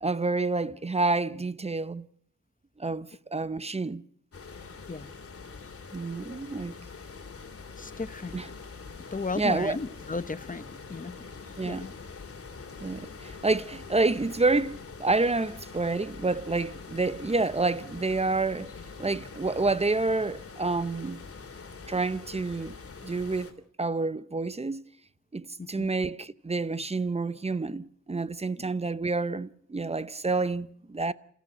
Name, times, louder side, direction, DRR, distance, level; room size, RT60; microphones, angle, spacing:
voice 1, 0.0-2.1 2.8-4.0 5.9-6.8 8.3-8.5 9.4-9.8 11.6-11.9 12.8-18.7 19.0-21.2 21.9-22.8 23.0-23.5 23.8-24.8 25.3-31.1, right 3 dB, 20° right, 0.8 m, -28 dB
sound 1, 4.3-23.5, left 4 dB, 50° left, 2.9 m, -44 dB
voice 2, 7.8-8.3 9.1-11.1 11.7-11.9 25.6-25.9 28.6-28.7, left 3 dB, 25° left, 1.1 m, -35 dB
28.0 x 14.5 x 7.7 m
cardioid pair, 75°, 30 cm